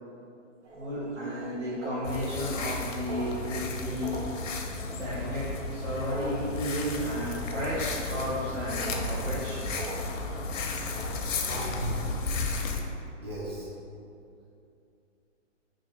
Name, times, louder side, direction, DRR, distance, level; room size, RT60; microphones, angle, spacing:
sound 1, 0.6-11.6, right 2 dB, 70° right, 1.0 m, -43 dB
voice 1, 0.7-4.1 4.9-9.7, equal, 90° right, -11 dB, 1.3 m, -33 dB
sound 2, 2.0-12.8, left 3 dB, 85° left, 0.6 m, -34 dB
voice 2, 11.5-12.1 13.2-13.7, right 2 dB, 20° right, -8 dB, 0.6 m, -36 dB
3.2 x 2.5 x 4.1 m, 2.6 s
hypercardioid pair, 160°, 37 cm